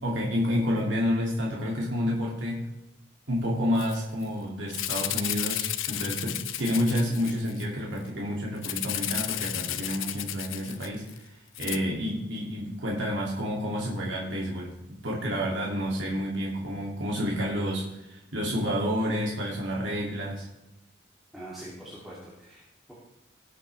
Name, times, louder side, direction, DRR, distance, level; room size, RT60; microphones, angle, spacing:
voice 1, 0.0-2.7 3.3-11.0 11.6-14.7 15.0-20.5, equal, 70° right, -3 dB, 2.6 m, -29 dB
Rattle (instrument), 3.8-4.0 4.2-4.3 4.7-7.6 8.6-11.2 11.5-11.8, left 13 dB, 85° left, 0.7 m, -33 dB
voice 2, 21.3-22.9, right 1 dB, ahead, -8 dB, 2.7 m, -44 dB
18.5 x 8.2 x 3.4 m, 0.92 s
head